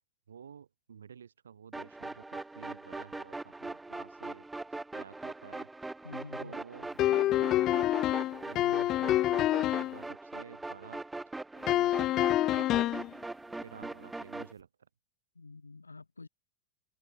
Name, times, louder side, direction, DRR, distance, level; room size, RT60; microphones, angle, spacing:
voice 1, 0.3-4.5 4.9-5.7 6.4-8.0 8.4-11.0 11.7-13.1 13.5-14.9, right 7 dB, 75° right, 2.5 m, -51 dB
sound 1, 1.7-14.5, right 2 dB, 10° right, 1.3 m, -41 dB
voice 2, 6.0-6.5 8.6-8.9 15.3-16.3, left 3 dB, 85° left, 4.3 m, -47 dB
sound 2, 7.0-10.0 11.7-13.1, left 14 dB, 40° left, 0.4 m, -27 dB
figure-of-eight pair, 85°, 0 cm